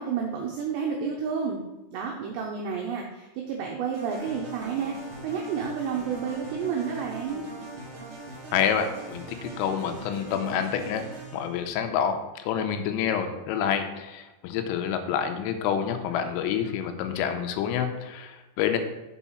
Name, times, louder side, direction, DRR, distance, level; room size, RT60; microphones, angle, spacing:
voice 1, 0.0-1.6 1.9-7.5, right 6 dB, 85° right, 0 dB, 2.4 m, -30 dB
sound 1, 3.9-11.6, right 2 dB, 65° right, 1.4 m, -41 dB
voice 2, 8.5-11.1 11.3-18.8, left 8 dB, 85° left, 7 dB, 3.3 m, -28 dB
7.2 x 4.7 x 5.6 m, 1.0 s
omnidirectional pair, 5.9 m